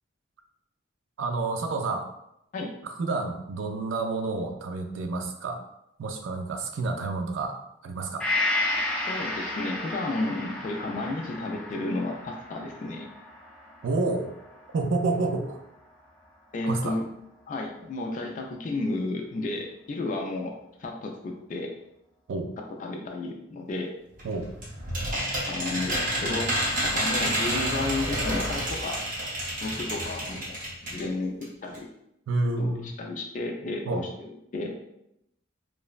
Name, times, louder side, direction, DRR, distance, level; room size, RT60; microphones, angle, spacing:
voice 1, 1.2-2.1 2.8-5.6 6.0-7.6 7.8-8.3 13.8-14.3 14.7-15.6 16.6-17.0 22.3-22.5 24.2-24.5 32.3-32.9 33.9-34.0, right 3 dB, 80° right, 5 dB, 0.4 m, -29 dB
Gong, 8.2-15.8 16.2-16.3, left 2 dB, 5° left, 0.7 m, -33 dB
voice 2, 9.1-13.1 15.2-15.4 16.5-17.1 17.5-20.5 20.8-21.7 22.8-23.9 25.1-26.5 26.8-29.0 29.6-30.6 30.9-31.9 32.6-34.7, left 2 dB, 45° left, 1 dB, 0.3 m, -32 dB
sound 1, 24.2-31.1 31.4-31.5 31.7-31.8, equal, 45° right, 0.7 m, -29 dB
3.1 x 2.0 x 2.4 m, 0.81 s
head